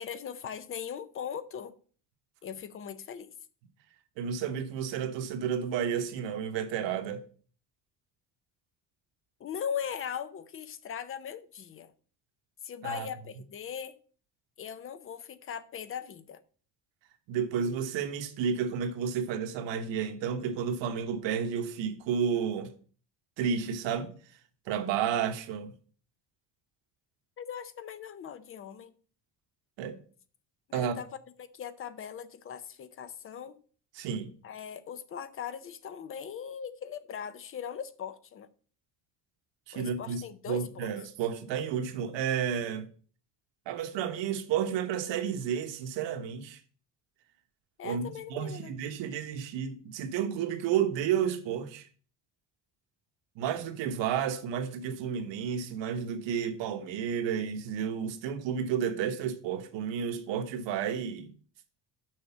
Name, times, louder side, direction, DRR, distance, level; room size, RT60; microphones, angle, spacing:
voice 1, 0.0-1.7 2.4-3.3 9.4-11.9 12.6-14.0 14.6-16.4 27.4-28.9 30.7-31.1 31.4-33.6 34.4-38.5 39.7-40.9 47.8-48.7, left 8 dB, 30° left, 0.6 m, -39 dB
voice 2, 4.2-7.2 12.8-13.1 17.3-22.7 23.4-24.1 24.7-25.7 29.8-30.0 30.7-31.0 33.9-34.3 39.7-42.9 43.7-46.6 47.8-48.0 48.3-51.9 53.4-61.3, right 8 dB, 85° right, 1.3 m, -31 dB
6.4 x 5.8 x 7.0 m
cardioid pair, 175°, 43 cm